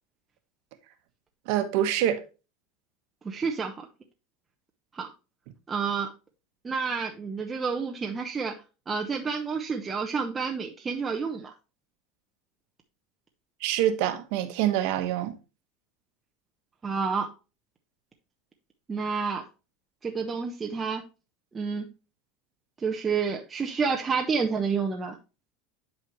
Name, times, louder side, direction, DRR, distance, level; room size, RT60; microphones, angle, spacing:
voice 1, 1.5-2.2 13.6-15.4, right 11 dB, 70° right, 1.3 m, -25 dB
voice 2, 3.2-3.9 4.9-5.1 5.7-6.1 6.6-8.5 8.9-11.5 16.8-17.3 18.9-19.4 20.0-21.0 21.5-21.9 22.8-25.2, right 5 dB, 20° right, 0.9 m, -29 dB
10.5 x 4.3 x 3.1 m
supercardioid pair, 120°, 0 cm